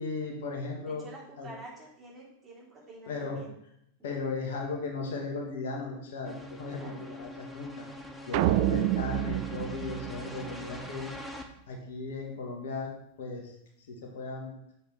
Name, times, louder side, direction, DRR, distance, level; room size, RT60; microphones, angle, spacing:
voice 1, 0.0-1.0 1.4-1.5 3.1-3.4 4.0-7.9 8.3-11.1 11.7-12.9 13.2-13.6 13.9-14.6, left 4 dB, 60° left, 0 dB, 1.8 m, -36 dB
voice 2, 0.8-3.5 6.7-7.0, right 1 dB, 20° right, -4 dB, 3.2 m, -48 dB
sound 1, 6.2-11.4, left 1 dB, 5° left, 1.0 m, -43 dB
sound 2, 8.3-10.8, right 15 dB, 50° right, 0.3 m, -28 dB
7.3 x 5.2 x 4.7 m, 0.77 s
figure-of-eight pair, 90°, 0 cm